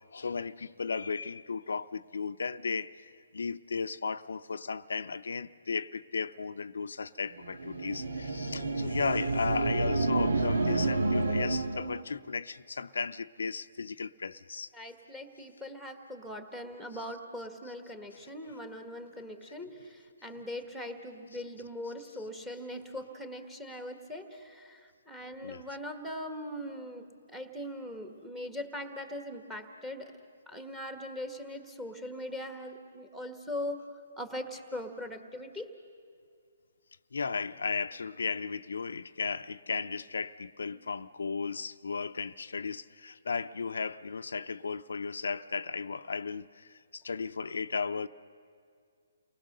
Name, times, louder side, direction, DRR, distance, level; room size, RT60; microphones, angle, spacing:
voice 1, 0.1-14.7 25.4-25.6 37.1-48.1, left 5 dB, 85° left, 0.6 m, -35 dB
sound 1, 7.4-12.0, right 3 dB, 85° right, 1.8 m, -29 dB
voice 2, 14.7-30.1 30.5-33.9 34.2-35.7, left 1 dB, 5° right, 1.5 m, -41 dB
29.5 x 19.5 x 6.7 m
hypercardioid pair, 160°, 0 cm